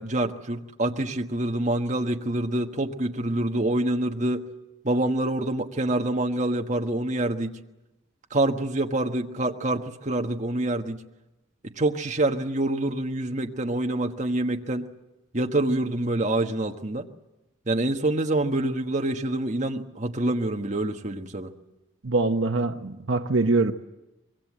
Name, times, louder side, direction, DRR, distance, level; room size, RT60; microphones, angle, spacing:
voice 1, 0.0-4.4 4.8-7.5 8.3-11.0 11.8-14.9 15.3-17.1 17.7-21.5, right 1 dB, 35° right, 3 dB, 1.4 m, -26 dB
voice 2, 22.0-23.7, right 3 dB, 70° right, 7 dB, 1.0 m, -23 dB
25.0 x 22.5 x 7.5 m, 0.98 s
head